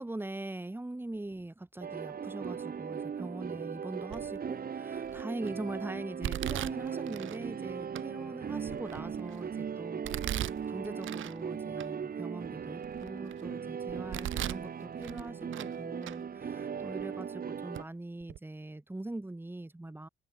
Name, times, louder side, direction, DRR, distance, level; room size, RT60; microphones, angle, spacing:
voice 1, 0.0-10.0 10.3-20.1, right 2 dB, 10° right, 3.4 m, -42 dB
sound 1, 1.8-17.8, right 7 dB, 45° right, 4.9 m, -38 dB
Domestic sounds home sounds, 4.1-4.5 5.1-5.5 6.2-7.4 8.0-8.1 8.6-9.4 10.0-11.4 11.8-11.9 12.5-13.4 13.9-14.7 15.0-15.8 16.0-16.2 17.0-17.1 17.7-17.9 18.2-18.4, right 13 dB, 80° right, 7.4 m, -38 dB
open air
cardioid pair, 90°, 20 cm